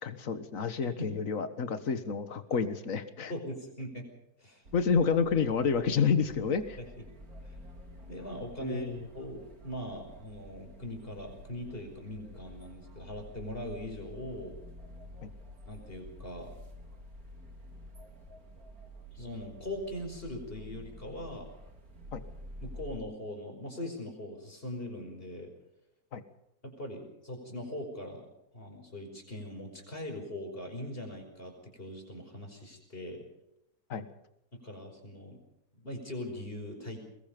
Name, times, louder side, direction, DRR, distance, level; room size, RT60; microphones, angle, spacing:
voice 1, 0.0-3.3 4.7-6.8 8.6-9.0 15.2-15.3 22.1-22.2 26.1-26.2 33.9-34.1, left 6 dB, 55° left, 10 dB, 1.8 m, -29 dB
voice 2, 0.8-1.1 3.3-4.1 4.4-4.6 6.8-6.9 7.4-7.6 8.1-14.6 15.7-16.5 19.1-21.5 22.6-25.5 26.6-28.3 28.5-33.2 34.5-35.4 35.7-37.0, left 1 dB, 35° left, 3 dB, 5.5 m, -41 dB
sound 1, 4.6-23.0, equal, 60° right, 3.4 m, -49 dB
23.5 x 21.0 x 5.3 m, 0.81 s
omnidirectional pair, 1.8 m